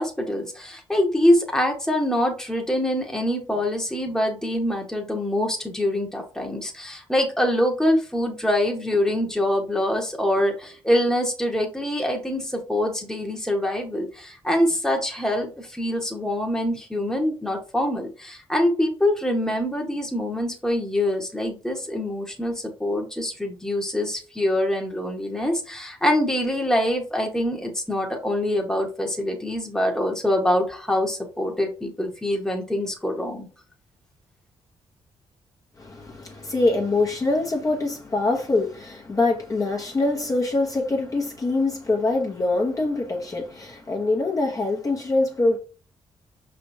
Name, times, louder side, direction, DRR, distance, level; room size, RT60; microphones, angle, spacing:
voice 1, 0.0-33.5, left 1 dB, 5° left, 1.2 m, -24 dB
voice 2, 35.8-45.6, left 2 dB, 30° left, 1.0 m, -24 dB
5.2 x 3.4 x 2.7 m
cardioid pair, 80°, 11 cm